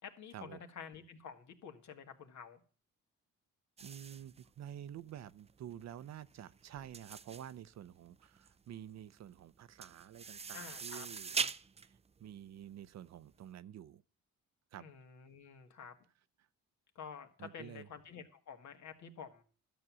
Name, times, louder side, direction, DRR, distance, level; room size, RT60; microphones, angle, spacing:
voice 1, 0.0-2.6 10.5-11.1 14.8-16.0 17.0-19.4, left 7 dB, 65° left, 2.0 m, -50 dB
sound 1, 3.8-13.4, right 5 dB, 20° right, 0.5 m, -43 dB
voice 2, 3.8-11.3 12.2-14.0 14.7-14.9 17.4-17.9, right 10 dB, 60° right, 0.7 m, -49 dB
12.5 x 7.4 x 6.2 m
cardioid pair, 90°, 30 cm